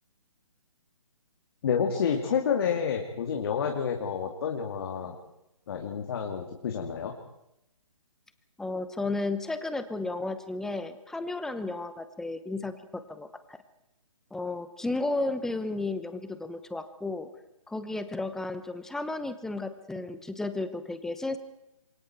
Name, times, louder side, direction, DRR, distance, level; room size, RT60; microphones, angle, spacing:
voice 1, 1.6-5.2 5.7-7.1, left 7 dB, 45° left, 2 dB, 2.5 m, -29 dB
voice 2, 8.6-13.6 14.3-17.3 17.7-21.4, left 2 dB, 5° left, 11 dB, 1.0 m, -33 dB
27.5 x 23.5 x 4.6 m, 0.86 s
figure-of-eight pair, 140°, 18 cm